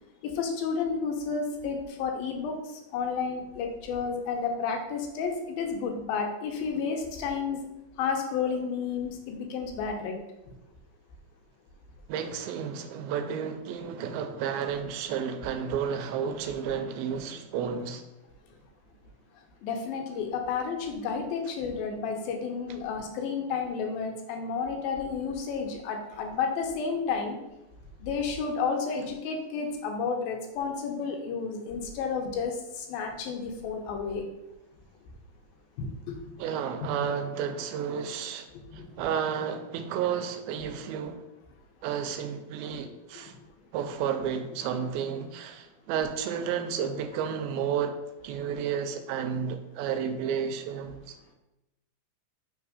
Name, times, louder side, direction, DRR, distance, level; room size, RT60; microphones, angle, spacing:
voice 1, 0.2-2.6 2.9-7.6 8.0-10.2 19.6-27.4 28.0-34.3 35.8-36.2 38.8-38.9 43.1-43.3, left 5 dB, 85° left, 3 dB, 2.6 m, -31 dB
voice 2, 12.1-18.1 36.4-38.5 38.7-41.2 41.8-43.4 43.7-48.0 48.2-51.4, right 7 dB, 90° right, 8 dB, 2.5 m, -32 dB
5.5 x 3.7 x 4.8 m, 0.95 s
omnidirectional pair, 4.1 m